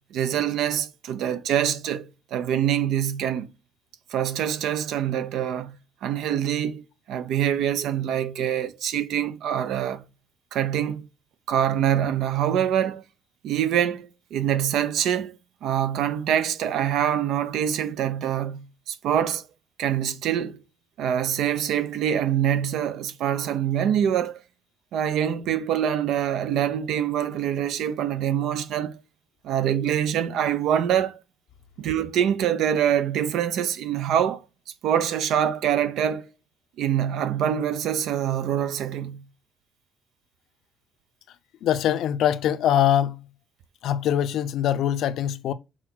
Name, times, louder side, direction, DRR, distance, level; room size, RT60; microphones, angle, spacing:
voice 1, 0.1-3.5 4.1-5.7 6.0-6.8 7.1-10.0 10.5-11.0 11.5-13.0 13.4-19.4 19.8-20.6 21.0-24.4 24.9-29.0 29.4-31.2 31.8-34.4 34.8-36.3 36.8-39.2, right 9 dB, 80° right, 0.8 m, -25 dB
voice 2, 41.6-43.2 43.8-45.5, left 10 dB, 75° left, 0.7 m, -23 dB
6.4 x 4.1 x 6.1 m
cardioid pair, 135°, 0 cm